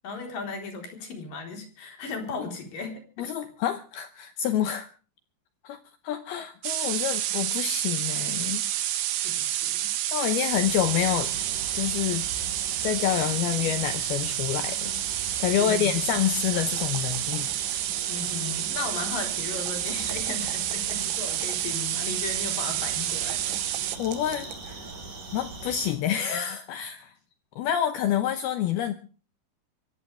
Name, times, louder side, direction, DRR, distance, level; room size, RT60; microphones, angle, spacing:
voice 1, 0.0-3.3 9.2-9.9 15.5-16.0 18.1-23.6, left 4 dB, 50° left, 4 dB, 5.4 m, -36 dB
voice 2, 3.2-4.9 5.6-5.8 6.0-8.7 10.1-11.3 11.7-12.3 12.8-17.8 18.7-18.8 24.0-24.8 25.3-27.1 27.6-28.9, left 10 dB, 75° left, 10 dB, 2.4 m, -28 dB
sound 1, 6.6-24.0, right 13 dB, 85° right, 1.8 m, -29 dB
sound 2, 10.5-26.0, right 3 dB, 45° right, 6.9 m, -41 dB
sound 3, 16.1-18.0 19.5-21.8 23.2-24.8, right 12 dB, 70° right, 2.9 m, -43 dB
23.5 x 15.5 x 3.4 m, 0.37 s
omnidirectional pair, 5.4 m